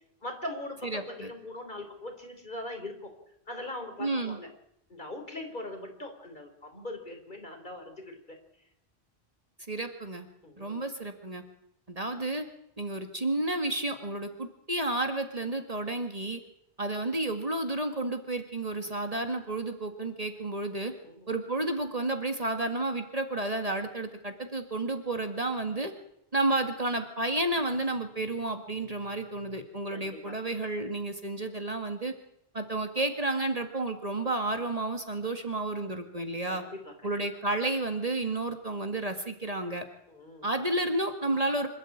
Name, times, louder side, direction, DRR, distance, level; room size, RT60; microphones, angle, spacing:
voice 1, 0.2-3.1 3.5-4.5 4.9-8.4 10.4-10.8 21.0-21.3 29.9-30.4 36.5-36.9 40.1-40.5, left 1 dB, 45° left, 4 dB, 4.3 m, -41 dB
voice 2, 0.8-1.3 4.0-4.4 9.7-10.3 10.6-11.4 11.9-12.5 12.8-16.4 16.8-20.9 21.3-25.9 26.3-32.1 32.5-36.6 37.0-39.8 40.4-41.7, right 2 dB, 35° right, 6 dB, 2.0 m, -31 dB
26.5 x 13.0 x 8.7 m, 0.75 s
omnidirectional pair, 1.1 m